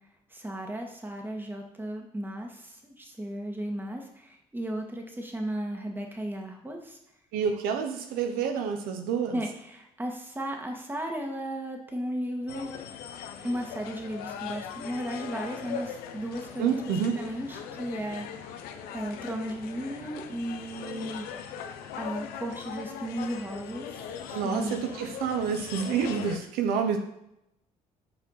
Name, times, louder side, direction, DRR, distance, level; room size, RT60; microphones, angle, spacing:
voice 1, 0.3-7.0 9.3-12.7 13.4-16.8 17.2-18.7 18.9-21.3 22.0-24.8, right 1 dB, 15° right, 2 dB, 1.8 m, -35 dB
voice 2, 7.3-9.4 16.6-17.2 24.3-27.0, right 6 dB, 90° right, 5 dB, 0.9 m, -28 dB
sound 1, 12.5-26.4, left 7 dB, 90° left, 0.7 m, -40 dB
6.7 x 4.4 x 5.7 m, 0.81 s
cardioid pair, 85°, 15 cm